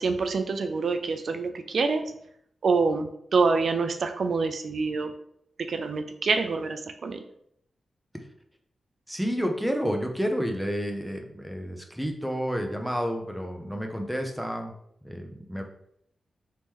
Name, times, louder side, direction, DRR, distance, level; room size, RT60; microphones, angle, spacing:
voice 1, 0.0-2.1 2.6-5.1 5.6-7.2, right 4 dB, 65° right, 7 dB, 0.3 m, -26 dB
voice 2, 9.1-14.7 15.0-15.6, equal, ahead, 3 dB, 0.6 m, -30 dB
3.1 x 2.9 x 3.5 m, 0.71 s
wide cardioid pair, 95°, 0 cm